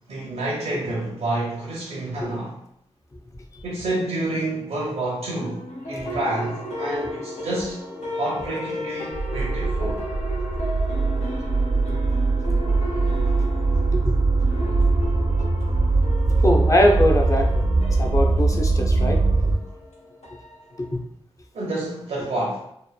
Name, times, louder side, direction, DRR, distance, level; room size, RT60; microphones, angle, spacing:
voice 1, 0.1-2.6 3.6-7.8 8.1-10.0 21.5-22.6, right 1 dB, 90° right, 0.6 m, -28 dB
sound 1, 5.4-21.0, left 1 dB, 75° left, 0.6 m, -34 dB
sound 2, 9.1-19.6, right 3 dB, 45° right, 0.4 m, -21 dB
voice 2, 16.4-17.5 18.0-19.2 20.8-21.0, left 1 dB, 30° left, 0.4 m, -21 dB
2.9 x 2.0 x 2.2 m
cardioid pair, 60°, 11 cm